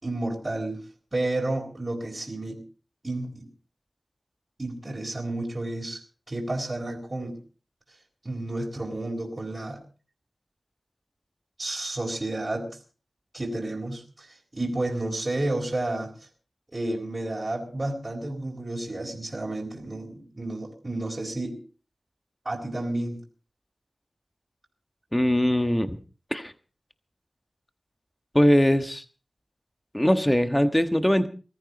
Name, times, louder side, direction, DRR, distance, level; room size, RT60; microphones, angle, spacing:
voice 1, 0.0-0.8 1.1-2.6 3.0-3.5 4.6-6.0 6.3-7.4 8.2-9.8 11.6-12.7 13.3-16.1 16.7-21.6 22.4-23.2, right 2 dB, 40° right, -2 dB, 4.1 m, -31 dB
voice 2, 25.1-26.0 26.3-26.5 28.3-29.0 29.9-31.3, equal, 10° left, 8 dB, 1.3 m, -21 dB
20.0 x 14.0 x 4.1 m, 0.37 s
cardioid pair, 50°, 0 cm